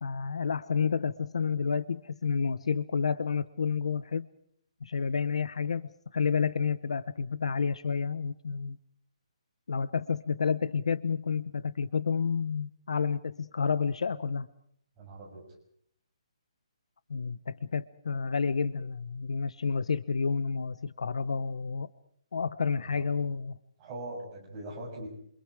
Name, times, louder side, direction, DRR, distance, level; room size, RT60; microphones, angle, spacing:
voice 1, 0.0-4.3 4.8-8.8 9.7-14.5 17.1-21.9 22.3-23.6, left 5 dB, 70° left, 16 dB, 0.9 m, -30 dB
voice 2, 15.0-15.4 22.7-23.0 23.8-25.1, right 1 dB, 15° right, -2 dB, 6.9 m, -41 dB
27.5 x 26.5 x 4.9 m, 0.67 s
hypercardioid pair, 175°, 3 cm